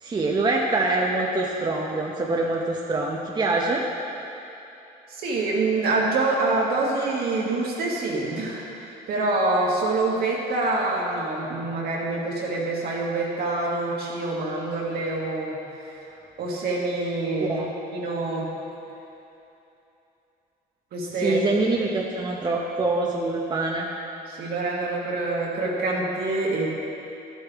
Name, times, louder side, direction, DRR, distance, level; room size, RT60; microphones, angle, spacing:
voice 1, 0.0-3.8 17.5-17.7 21.2-23.9, right 2 dB, 25° right, -1 dB, 0.8 m, -25 dB
voice 2, 5.1-15.6 16.4-17.6 17.9-18.5 20.9-21.4 24.3-26.7, right 2 dB, 65° right, -3 dB, 1.9 m, -26 dB
12.0 x 8.1 x 3.5 m, 2.9 s
cardioid pair, 110°, 17 cm